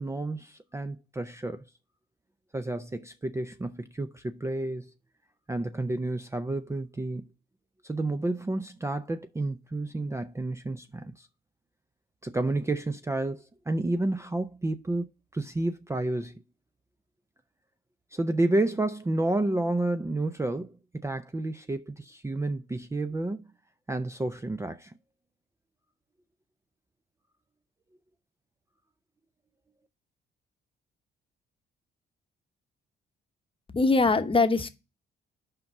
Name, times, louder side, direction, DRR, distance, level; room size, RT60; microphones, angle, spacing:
voice 1, 0.0-1.7 2.5-4.9 5.5-7.2 7.8-11.3 12.2-15.0 15.3-16.4 18.1-20.8 21.0-23.4 23.9-24.9, right 2 dB, 15° right, 0.5 m, -30 dB
voice 2, 33.7-34.7, left 3 dB, 25° left, 0.9 m, -22 dB
5.6 x 5.4 x 6.5 m
cardioid pair, 90°, 20 cm